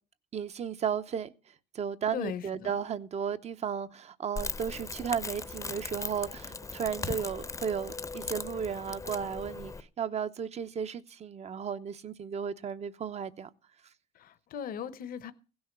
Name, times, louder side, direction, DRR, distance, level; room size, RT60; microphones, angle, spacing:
voice 1, 0.3-1.3 1.7-13.5, right 7 dB, 40° right, 0.8 m, -34 dB
voice 2, 2.1-2.7 14.1-15.3, left 8 dB, 60° left, 0.9 m, -38 dB
Crackle, 4.4-9.8, left 4 dB, 20° left, 0.7 m, -38 dB
16.0 x 6.3 x 7.2 m
cardioid pair, 110°, 17 cm